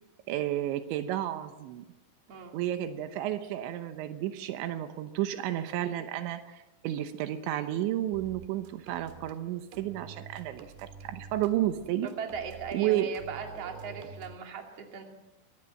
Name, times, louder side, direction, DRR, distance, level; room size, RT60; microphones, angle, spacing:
voice 1, 0.3-1.8 2.5-12.1 12.7-13.1 13.9-14.1, right 13 dB, 85° right, 9 dB, 3.3 m, -32 dB
sound 1, 8.1-9.3 9.7-12.8 13.1-14.4, right 6 dB, 65° right, 3.3 m, -48 dB
voice 2, 12.0-15.0, right 6 dB, 40° right, 2 dB, 3.2 m, -38 dB
23.5 x 18.0 x 7.6 m, 1.1 s
omnidirectional pair, 5.2 m